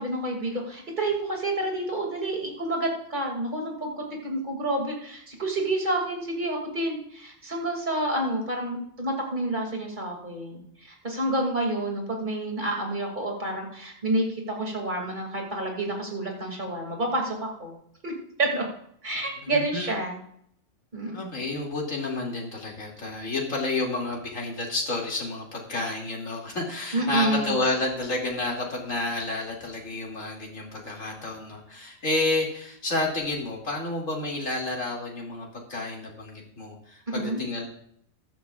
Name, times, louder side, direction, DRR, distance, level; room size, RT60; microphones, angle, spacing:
voice 1, 0.0-17.7 18.0-18.1 18.4-18.6 19.0-20.2 20.9-21.4 26.9-27.5 37.1-37.4, right 1 dB, 35° right, 1 dB, 2.7 m, -29 dB
voice 2, 19.4-19.9 21.1-37.7, left 2 dB, 70° left, -2 dB, 3.0 m, -30 dB
14.5 x 11.5 x 2.4 m, 0.69 s
omnidirectional pair, 1.4 m